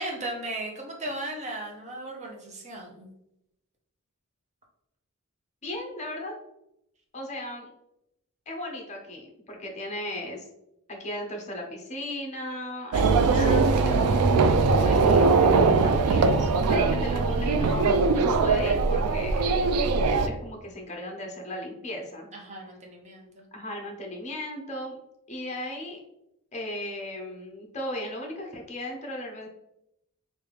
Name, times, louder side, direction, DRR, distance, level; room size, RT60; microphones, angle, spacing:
voice 1, 0.0-3.1 22.3-23.5, right 1 dB, 30° right, 0 dB, 0.7 m, -36 dB
voice 2, 5.6-6.3 7.1-7.7 8.5-10.5 10.9-14.3 14.7-15.3 15.8-19.5 20.0-22.3 23.5-25.0 25.3-26.0 26.5-29.5, left 1 dB, 30° left, 1 dB, 0.8 m, -36 dB
sound 1, 12.9-20.3, right 4 dB, 80° right, 0.3 m, -21 dB
3.4 x 2.6 x 3.3 m, 0.82 s
head